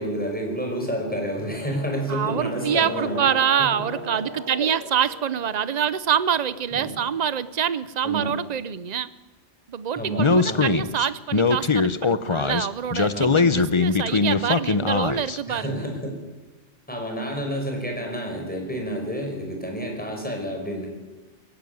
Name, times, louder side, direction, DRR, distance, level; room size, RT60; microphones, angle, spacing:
voice 1, 0.0-3.2 3.6-3.7 4.1-4.2 4.6-4.7 6.7-7.0 8.0-8.4 10.0-10.8 13.1-13.5 15.5-16.2 16.9-20.9, equal, 5° left, 1 dB, 5.3 m, -29 dB
sound 1, 1.3-7.2, left 1 dB, 65° left, 3.2 m, -40 dB
voice 2, 2.1-9.1 9.7-15.9, right 8 dB, 40° right, 16 dB, 0.8 m, -26 dB
Speech, 10.2-15.4, left 4 dB, 30° left, 0.7 m, -21 dB
21.0 x 15.5 x 9.4 m, 1.2 s
omnidirectional pair, 1.2 m